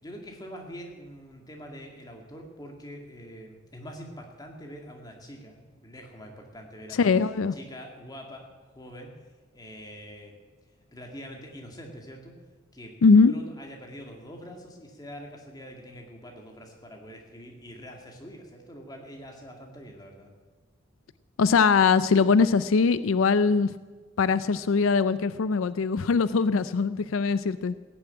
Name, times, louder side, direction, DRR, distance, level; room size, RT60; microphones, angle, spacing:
voice 1, 0.0-7.1 7.5-8.4 8.7-9.1 9.5-10.4 10.9-12.3 12.7-20.3, equal, 20° left, 1 dB, 2.1 m, -44 dB
voice 2, 6.9-7.5 13.0-13.3 21.4-23.7 24.2-27.7, left 4 dB, 85° left, 15 dB, 0.5 m, -21 dB
16.5 x 7.1 x 8.9 m, 1.3 s
head